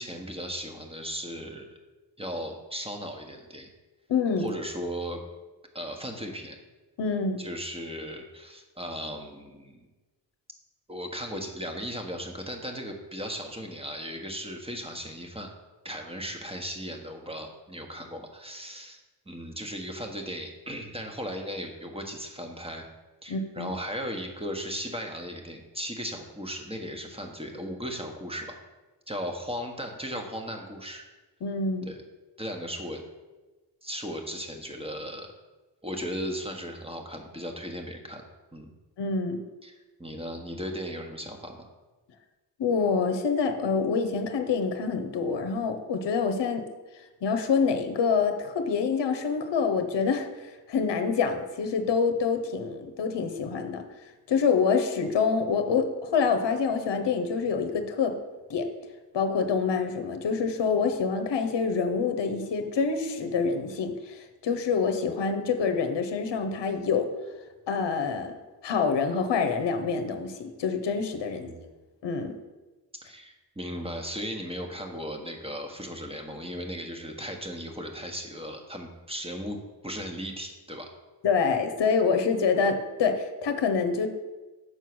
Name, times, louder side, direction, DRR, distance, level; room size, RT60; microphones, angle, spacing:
voice 1, 0.0-1.8 2.2-3.7 4.4-5.2 5.7-6.6 7.4-9.9 10.9-15.5 15.8-19.0 19.3-22.8 23.2-28.6 29.1-31.0 31.9-32.0 32.4-33.0 33.8-35.3 35.8-38.2 38.5-38.7 39.6-39.7 40.0-41.7 71.3-71.6 73.0-79.6 79.8-80.9, equal, 15° right, 3 dB, 1.4 m, -36 dB
voice 2, 4.1-4.5 7.0-7.4 23.3-23.7 31.4-31.9 39.0-39.4 42.6-46.7 47.2-53.8 54.3-58.2 58.5-58.7 59.1-67.1 67.7-68.4 68.6-71.5 72.0-72.3 81.2-84.1, left 5 dB, 70° left, 7 dB, 0.9 m, -26 dB
6.5 x 4.5 x 6.2 m, 1.2 s
cardioid pair, 45°, 44 cm